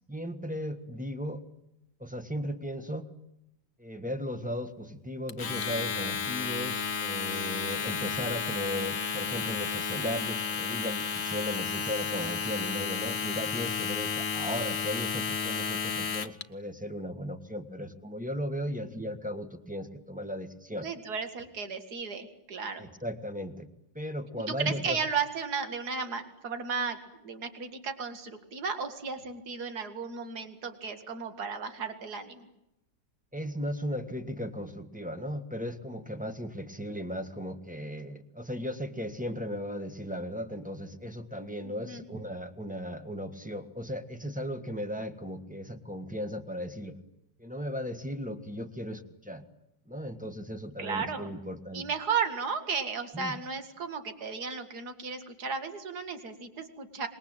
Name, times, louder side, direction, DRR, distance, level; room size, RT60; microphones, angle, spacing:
voice 1, 0.1-1.4 2.0-3.0 3.8-20.9 22.8-23.7 23.9-25.0 33.3-47.0 47.4-49.4 49.9-51.9 53.1-53.3, equal, 5° right, 8 dB, 1.4 m, -36 dB
Domestic sounds home sounds, 5.3-16.4, left 6 dB, 40° left, 1.1 m, -32 dB
voice 2, 20.8-22.8 24.6-32.5 41.6-42.0 50.8-51.3 51.7-57.1, right 5 dB, 55° right, 8 dB, 2.6 m, -34 dB
26.5 x 21.5 x 9.0 m, 0.89 s
omnidirectional pair, 2.0 m